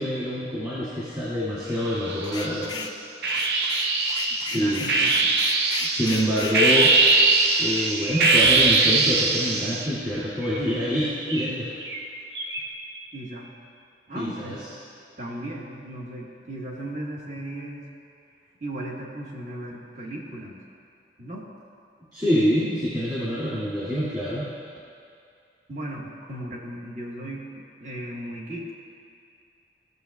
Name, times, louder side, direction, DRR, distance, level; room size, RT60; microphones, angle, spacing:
voice 1, 0.0-2.7 4.4-5.1 5.8-6.9 7.6-11.7 14.1-14.6 22.1-24.5, equal, 25° right, -11 dB, 2.2 m, -26 dB
sound 1, 1.8-2.6 3.2-9.9, right 3 dB, 60° right, 0.6 m, -22 dB
sound 2, 2.2-3.0 3.3-6.6, left 4 dB, 25° left, 0.4 m, -35 dB
Chirp tweet, 3.5-5.1 6.2-9.3 10.4-10.7 11.3-11.5 11.8-12.0 12.3-12.6, right 2 dB, 75° right, 1.0 m, -26 dB
voice 2, 4.5-5.3 13.1-13.5 14.1-14.6 15.2-17.9 18.6-20.6 21.2-21.4 25.7-28.8, right 1 dB, 45° right, -3 dB, 1.3 m, -36 dB
17.5 x 6.7 x 2.3 m, 2.4 s
head